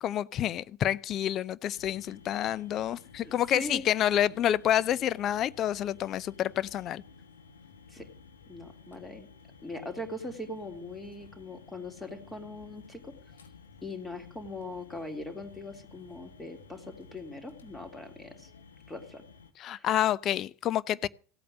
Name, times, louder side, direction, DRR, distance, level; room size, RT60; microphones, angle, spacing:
voice 1, 0.0-7.0 19.6-21.1, left 11 dB, 40° left, 0.6 m, -28 dB
sound 1, 1.7-19.5, left 5 dB, 75° left, 1.4 m, -53 dB
voice 2, 3.2-3.8 7.9-8.1 8.5-9.3 9.6-13.1 13.8-18.5 18.9-19.2 19.7-19.9, left 2 dB, 10° left, 3.4 m, -41 dB
16.5 x 8.6 x 6.6 m
figure-of-eight pair, 80°, 0 cm